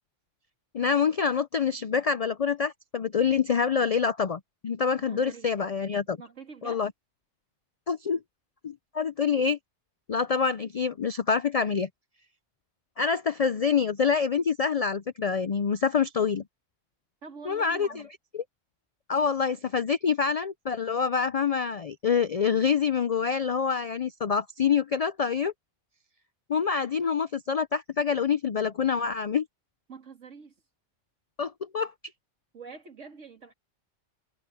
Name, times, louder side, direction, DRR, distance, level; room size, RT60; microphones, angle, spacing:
voice 1, 0.7-6.2 6.6-6.9 7.9-8.2 8.6-9.6 10.1-11.9 13.0-16.4 17.5-17.9 19.1-25.5 26.5-29.5 31.4-31.9, left 6 dB, 65° left, 0.3 m, -26 dB
voice 2, 5.0-5.5 6.0-6.9 17.2-18.1 29.9-30.6 32.5-33.5, right 4 dB, 70° right, 2.6 m, -45 dB
omnidirectional pair, 1.3 m